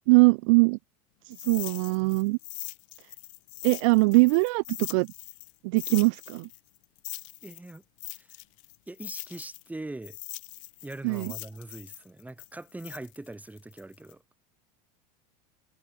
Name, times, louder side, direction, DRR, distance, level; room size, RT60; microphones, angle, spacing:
voice 1, 0.1-0.8 1.3-2.4 3.6-5.1 5.6-6.5 11.0-11.3, right 27 dB, 50° right, 0.7 m, -22 dB
sound 1, 1.3-5.5 5.8-9.7 10.0-14.1, left 28 dB, 55° left, 7.1 m, -41 dB
voice 2, 7.4-7.8 8.1-8.3 8.9-10.2 10.8-14.2, right 2 dB, 10° right, 6.1 m, -42 dB
figure-of-eight pair, 75°, 20 cm